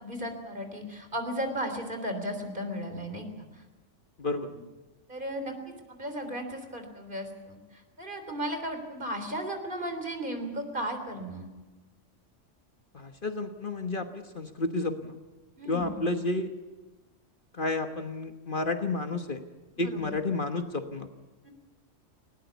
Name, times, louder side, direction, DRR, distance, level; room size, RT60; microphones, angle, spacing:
voice 1, 0.0-3.6 4.5-4.6 5.1-5.6 6.0-11.5 15.6-16.0 19.8-20.2 21.4-21.5, equal, 40° right, 6 dB, 3.7 m, -35 dB
voice 2, 4.2-4.5 12.9-15.2 15.7-16.5 17.5-19.4 19.8-21.1, left 2 dB, 45° left, 7 dB, 1.4 m, -31 dB
20.0 x 19.0 x 8.3 m, 1.2 s
omnidirectional pair, 1.3 m